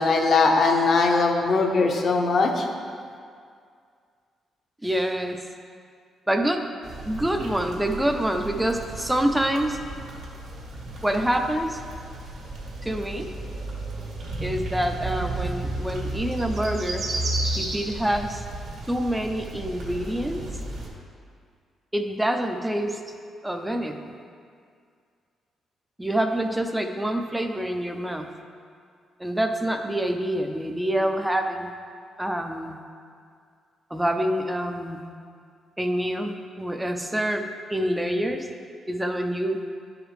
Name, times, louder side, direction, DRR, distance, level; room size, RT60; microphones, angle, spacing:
voice 1, 0.0-2.7, left 3 dB, 50° left, 3 dB, 0.7 m, -20 dB
voice 2, 4.8-5.4 6.3-6.7 7.1-9.8 11.0-11.8 12.8-13.3 14.4-17.1 17.5-18.4 18.9-20.4 21.9-23.0 23.4-24.1 26.0-28.3 29.2-31.7 32.2-32.8 33.9-35.0 35.8-38.5 38.9-39.6, right 1 dB, 5° right, 5 dB, 0.5 m, -26 dB
sound 1, 6.8-20.9, right 2 dB, 70° right, 1.7 m, -33 dB
10.5 x 4.9 x 3.2 m, 2.2 s
cardioid pair, 120°, 0 cm